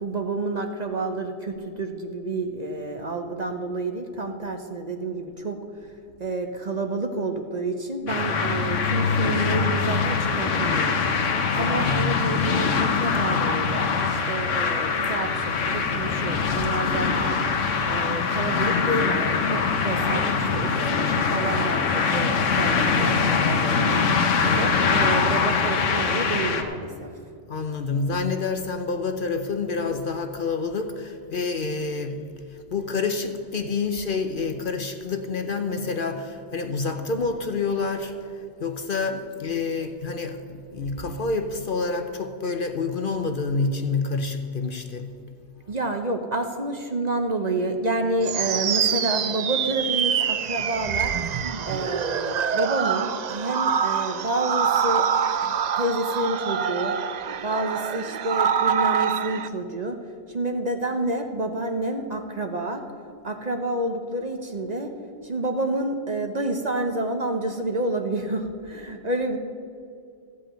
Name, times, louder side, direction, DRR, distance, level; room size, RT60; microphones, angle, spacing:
voice 1, 0.0-5.6 6.2-17.4 17.9-24.0 24.4-27.1 45.7-51.4 51.7-55.1 55.4-56.9 57.4-60.0 60.3-62.8 63.2-64.9 65.2-69.4, right 2 dB, 40° right, 5 dB, 0.9 m, -29 dB
sound 1, 8.1-26.6, left 5 dB, 85° left, 1.3 m, -23 dB
voice 2, 11.5-12.3 15.0-15.2 24.4-25.1 27.5-45.1, left 4 dB, 50° left, 7 dB, 0.8 m, -28 dB
sound 2, 48.2-59.5, right 8 dB, 65° right, 0.4 m, -25 dB
14.5 x 5.4 x 8.8 m, 2.4 s
omnidirectional pair, 1.2 m